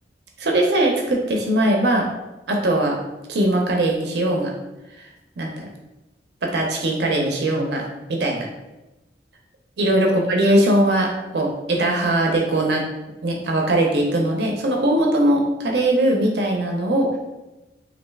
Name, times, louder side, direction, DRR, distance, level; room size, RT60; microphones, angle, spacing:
voice 1, 0.4-2.1 2.5-3.0 3.3-4.5 4.9-5.1 5.4-5.7 6.4-7.8 8.1-8.5 9.8-12.9 13.2-17.2, right 1 dB, 65° right, 1 dB, 0.5 m, -20 dB
3.0 x 2.5 x 3.4 m, 1.0 s
head